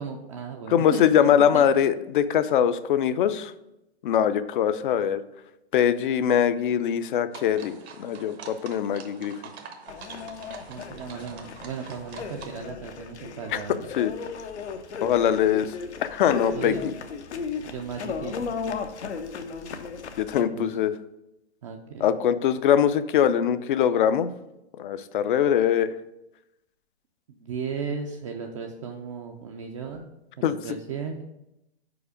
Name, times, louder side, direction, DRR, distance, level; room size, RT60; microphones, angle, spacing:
voice 1, 0.0-1.9 10.7-13.9 16.5-16.9 17.6-18.6 20.4-20.7 21.6-22.1 27.3-30.1 30.4-31.2, right 6 dB, 30° right, 2 dB, 0.4 m, -36 dB
voice 2, 0.7-3.5 4.0-5.2 5.7-9.3 13.5-13.6 14.0-14.1 15.0-15.7 16.0-16.9 20.2-20.9 22.0-24.3 24.8-25.9 30.4-30.5, left 9 dB, 50° left, 13 dB, 0.4 m, -22 dB
sound 1, 7.3-12.5, right 6 dB, 70° right, 1.0 m, -45 dB
sound 2, 9.9-20.4, left 5 dB, 85° left, 0.7 m, -35 dB
4.9 x 4.2 x 4.9 m, 0.90 s
hypercardioid pair, 135°, 33 cm